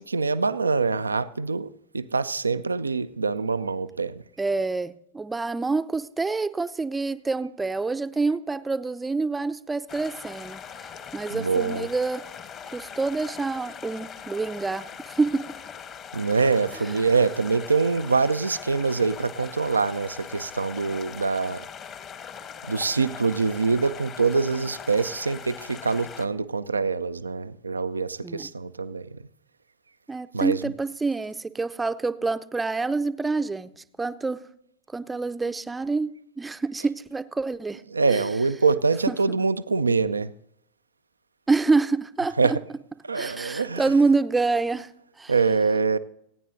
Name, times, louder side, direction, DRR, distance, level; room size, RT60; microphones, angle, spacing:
voice 1, 0.0-4.2 11.3-11.9 16.1-21.6 22.7-29.2 30.3-30.6 37.9-40.3 42.4-42.6 43.0-43.9 45.3-46.0, right 4 dB, 75° right, 13 dB, 0.4 m, -24 dB
voice 2, 4.4-12.2 12.7-15.6 28.2-28.5 30.1-33.7 34.0-34.4 34.9-37.8 38.1-38.2 39.1-39.2 41.5-42.4 43.1-44.9 45.2-45.3, right 3 dB, 10° right, 12 dB, 0.6 m, -27 dB
sound 1, 9.9-26.3, left 7 dB, 30° left, 1.2 m, -41 dB
29.5 x 9.9 x 2.7 m, 0.77 s
figure-of-eight pair, 90°, 0 cm